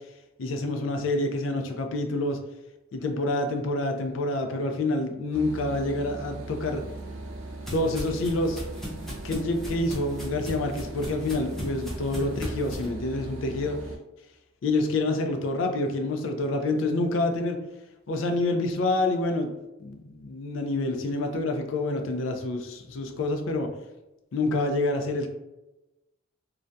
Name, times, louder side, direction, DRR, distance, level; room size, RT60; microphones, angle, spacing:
voice 1, 0.4-2.4 2.9-6.8 7.7-8.6 8.9-13.8 14.6-17.6 18.1-19.5 19.8-23.7 24.3-25.3, left 2 dB, 75° left, 5 dB, 0.4 m, -27 dB
sound 1, 5.3-14.0, right 2 dB, 80° right, 0.4 m, -39 dB
sound 2, 6.7-12.9, equal, ahead, 0.5 m, -39 dB
2.3 x 2.1 x 2.5 m, 0.99 s
head